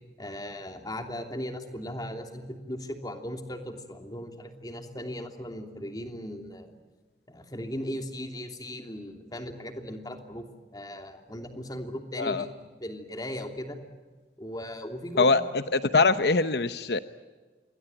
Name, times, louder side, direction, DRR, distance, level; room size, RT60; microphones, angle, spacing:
voice 1, 0.2-6.7 7.3-10.4 10.7-12.5 12.8-13.8 14.4-15.4, equal, 20° left, 5 dB, 3.0 m, -37 dB
voice 2, 15.2-17.0, left 3 dB, 65° left, 11 dB, 0.9 m, -23 dB
27.5 x 22.0 x 9.0 m, 1.3 s
head